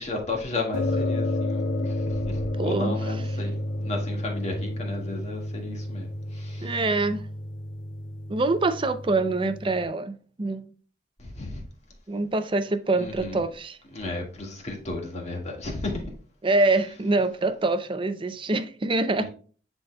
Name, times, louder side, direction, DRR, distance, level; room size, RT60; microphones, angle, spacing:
voice 1, 0.0-6.8 11.2-11.6 12.9-13.5 13.9-16.1 19.2-19.3, left 2 dB, 40° left, 1.8 m, -34 dB
sound 1, 0.7-9.9, left 1 dB, 85° left, 0.5 m, -31 dB
voice 2, 2.6-3.0 6.6-7.3 8.3-10.7 12.1-13.8 16.4-19.3, right 2 dB, 30° right, 0.5 m, -25 dB
10.0 x 4.1 x 2.3 m
head